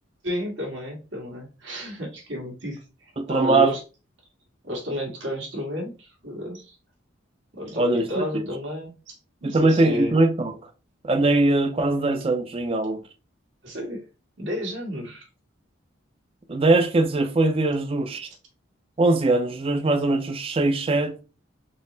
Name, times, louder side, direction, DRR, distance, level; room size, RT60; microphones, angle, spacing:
voice 1, 0.2-3.8 4.6-6.8 7.6-10.1 13.6-14.0 14.4-15.3, equal, 75° right, 1.6 m, -32 dB
voice 2, 3.2-3.7 7.8-8.3 9.4-10.5 11.0-13.0 16.5-18.3 19.0-21.2, right 2 dB, 30° right, 0.5 m, -21 dB
3.9 x 2.0 x 3.9 m
head